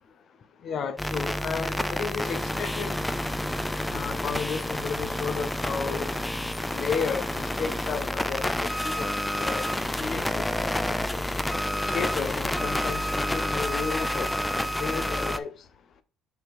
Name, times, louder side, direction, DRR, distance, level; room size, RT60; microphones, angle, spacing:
voice 1, 0.6-3.0 3.9-6.1 6.7-11.3 11.8-15.5, left 6 dB, 45° left, 0.6 m, -33 dB
sound 1, 1.0-15.4, left 1 dB, 5° left, 0.3 m, -29 dB
5.7 x 5.5 x 3.5 m
cardioid pair, 140°, 0 cm